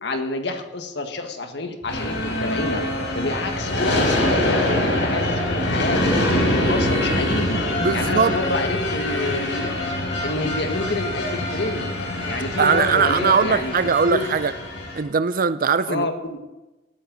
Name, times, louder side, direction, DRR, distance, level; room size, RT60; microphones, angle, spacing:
voice 1, 0.0-2.8 3.1-7.6 7.9-9.7 10.2-11.9 12.3-13.7 14.1-14.3 15.9-16.4, left 2 dB, 70° left, 1.6 m, -28 dB
sound 1, 1.8-13.5, equal, 25° right, 1.7 m, -42 dB
sound 2, 1.9-15.0, left 1 dB, 85° left, 4.4 m, -24 dB
voice 2, 7.8-8.4 12.6-14.5 14.9-16.1, right 5 dB, 50° right, 0.5 m, -20 dB
18.0 x 9.4 x 4.0 m
head